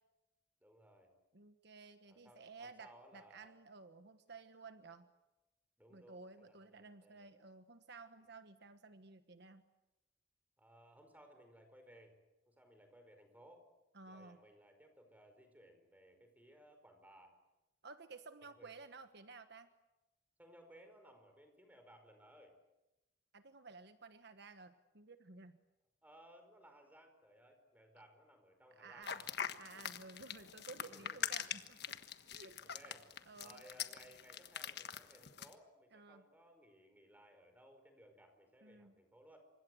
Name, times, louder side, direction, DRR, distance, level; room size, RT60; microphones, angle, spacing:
voice 1, 0.6-1.1 2.1-3.6 5.8-7.3 10.6-12.2 12.4-13.7 14.0-17.3 18.4-18.7 19.0-19.1 20.4-22.5 26.0-29.3 30.9-31.6 32.3-33.1 33.4-39.4, equal, 10° right, 6 dB, 5.0 m, -62 dB
voice 2, 1.3-5.1 5.9-9.6 13.9-14.4 17.8-19.7 23.3-25.6 28.8-29.2 29.6-32.0 32.3-32.8 33.3-33.6 35.9-36.2 38.6-38.9, right 4 dB, 60° right, 9 dB, 1.3 m, -55 dB
sound 1, 29.0-35.5, left 8 dB, 60° left, 1.5 m, -43 dB
28.0 x 25.5 x 7.9 m, 1.0 s
head